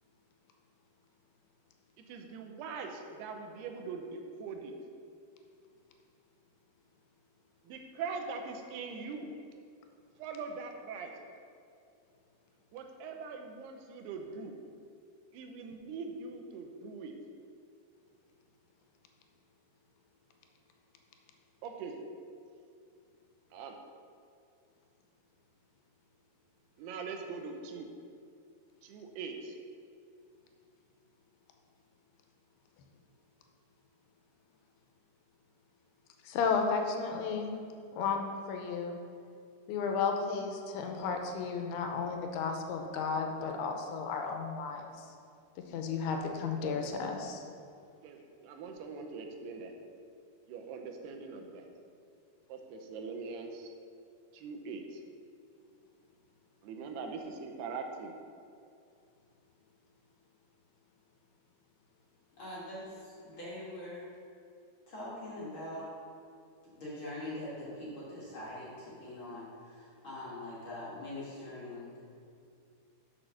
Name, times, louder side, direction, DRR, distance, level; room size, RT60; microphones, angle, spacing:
voice 1, 2.1-4.7 7.6-9.3 10.2-11.1 12.7-14.6 15.3-17.1 21.6-22.0 23.5-23.8 26.8-27.9 28.8-29.6 48.0-49.7 50.5-51.7 52.5-53.7 54.3-55.0 56.6-58.2, right 4 dB, 85° right, 4 dB, 2.8 m, -42 dB
voice 2, 36.2-37.5 38.0-39.0 39.7-45.1 45.7-47.4, left 5 dB, 85° left, 4 dB, 2.7 m, -33 dB
voice 3, 62.4-64.0 64.9-65.9 66.7-71.9, left 1 dB, 45° left, -8 dB, 1.8 m, -43 dB
6.6 x 6.0 x 6.3 m, 2.5 s
omnidirectional pair, 4.5 m